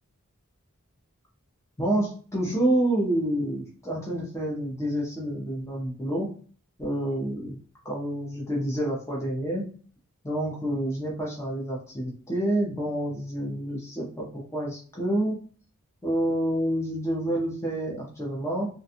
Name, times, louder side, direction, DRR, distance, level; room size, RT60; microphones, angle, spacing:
voice 1, 1.8-6.3 6.8-7.6 7.8-9.6 10.2-15.4 16.0-18.7, right 1 dB, 15° left, -4 dB, 0.6 m, -28 dB
2.5 x 2.3 x 2.7 m, 0.42 s
head